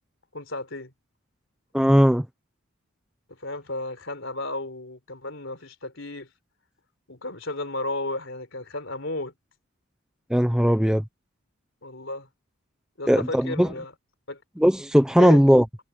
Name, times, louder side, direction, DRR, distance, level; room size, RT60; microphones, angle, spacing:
voice 1, 0.3-0.9 3.4-6.3 7.1-9.3 11.8-12.3 13.0-13.9 14.3-14.4 15.2-15.4, left 2 dB, 60° left, 4.4 m, -33 dB
voice 2, 1.7-2.2 10.3-11.0 13.1-13.7 14.6-15.6, equal, 5° right, 0.9 m, -18 dB
head